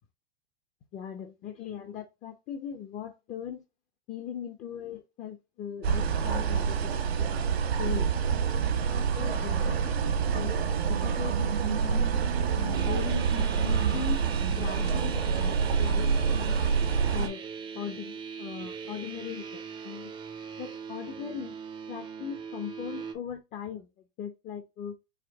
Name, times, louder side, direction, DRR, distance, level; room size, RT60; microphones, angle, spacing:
voice 1, 0.9-3.6 4.1-7.3 7.8-9.9 10.3-10.5 10.9-12.1 12.5-14.2 14.5-16.6 17.1-17.4 17.7-20.1 20.6-21.6 21.9-23.9 24.2-24.9, left 8 dB, 25° left, 0.6 m, -39 dB
sound 1, 5.8-17.3, right 6 dB, 85° right, 1.4 m, -27 dB
sound 2, 12.7-23.1, right 6 dB, 15° right, 0.5 m, -41 dB
5.0 x 2.5 x 3.5 m
supercardioid pair, 150°, 31 cm